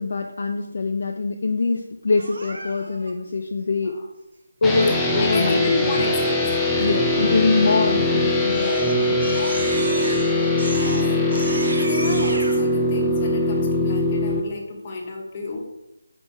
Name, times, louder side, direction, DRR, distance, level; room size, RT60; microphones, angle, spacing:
voice 1, 0.0-4.0 4.6-6.0 6.8-9.2, left 3 dB, 50° left, 4 dB, 0.5 m, -23 dB
Crying sobbing, 2.2-3.1 7.8-8.1 8.5-12.6, right 2 dB, 50° right, 1.3 m, -33 dB
sound 1, 4.6-14.4, left 1 dB, 5° left, 0.6 m, -21 dB
voice 2, 5.2-7.0 9.9-10.2 10.7-11.0 11.5-15.6, left 3 dB, 30° left, 1 dB, 1.2 m, -30 dB
5.3 x 5.1 x 4.6 m, 0.93 s
figure-of-eight pair, 155°, 0 cm